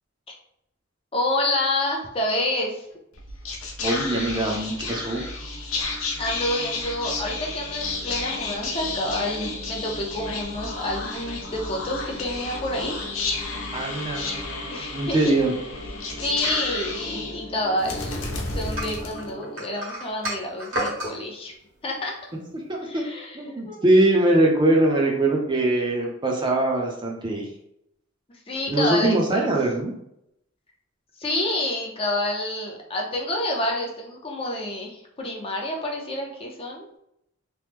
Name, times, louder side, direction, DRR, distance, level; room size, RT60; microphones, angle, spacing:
voice 1, 1.1-2.8 6.2-13.0 14.7-15.4 16.2-21.5 21.8-22.1 22.9-23.4 23.7-23.8 28.5-29.5 31.2-36.9, left 1 dB, 25° left, 0 dB, 0.5 m, -28 dB
Whispering, 3.1-19.7, left 3 dB, 75° left, 0.6 m, -32 dB
voice 2, 3.8-5.2 13.7-15.5 22.5-23.0 23.3-27.5 28.7-29.9, right 1 dB, 25° right, 0 dB, 0.5 m, -22 dB
sound 1, 18.8-21.2, equal, 75° right, 1.2 m, -30 dB
3.0 x 2.0 x 3.3 m, 0.78 s
head